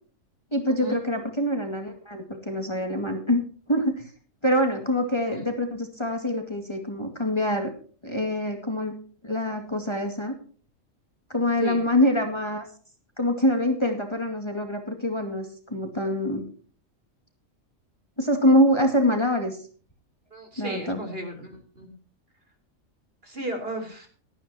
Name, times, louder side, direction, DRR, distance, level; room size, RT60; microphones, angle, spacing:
voice 1, 0.5-3.4 3.7-4.1 4.4-7.7 8.0-8.9 9.2-10.3 11.3-12.6 13.2-16.4 18.2-19.6 20.6-21.0, left 1 dB, 20° left, 3 dB, 2.4 m, -25 dB
voice 2, 20.3-21.9 23.2-24.1, right 1 dB, 45° right, 4 dB, 3.8 m, -35 dB
18.0 x 13.0 x 2.9 m, 0.41 s
omnidirectional pair, 1.4 m